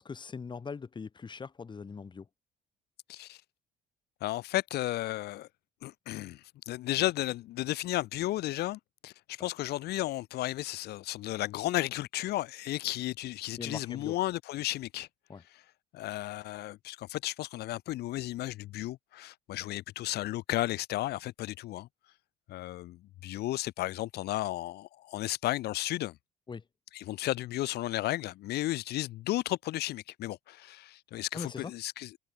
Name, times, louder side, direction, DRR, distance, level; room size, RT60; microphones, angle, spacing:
voice 1, 0.0-2.3 13.6-14.2 15.3-15.4 26.5-26.6 31.3-31.7, left 5 dB, 25° left, 1.7 m, -41 dB
voice 2, 4.2-5.5 5.8-15.1 15.5-15.6 15.9-21.9 22.5-26.2 26.9-32.2, left 16 dB, 75° left, 1.3 m, -34 dB
cardioid pair, 110°, 17 cm